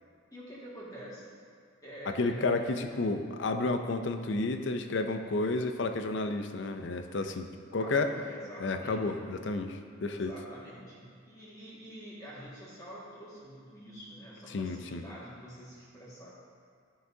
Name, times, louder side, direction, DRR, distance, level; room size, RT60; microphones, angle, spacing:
voice 1, 0.3-1.3 1.8-3.2 7.8-9.1 10.1-16.4, equal, 20° left, -8 dB, 1.8 m, -47 dB
voice 2, 2.2-8.1 8.6-10.3 14.5-15.0, left 3 dB, 60° left, 7 dB, 0.5 m, -31 dB
12.0 x 5.8 x 2.7 m, 2.3 s
head